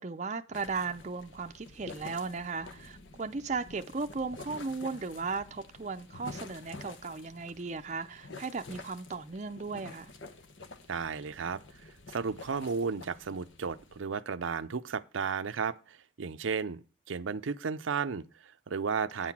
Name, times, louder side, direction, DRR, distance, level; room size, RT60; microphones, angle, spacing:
voice 1, 0.0-10.1 19.2-19.3, right 4 dB, 35° right, 0.5 m, -36 dB
sound 1, 0.5-14.0, left 3 dB, 75° left, 1.0 m, -49 dB
voice 2, 10.9-11.6 12.1-19.3, right 5 dB, 85° right, 0.5 m, -34 dB
9.3 x 5.8 x 6.0 m
head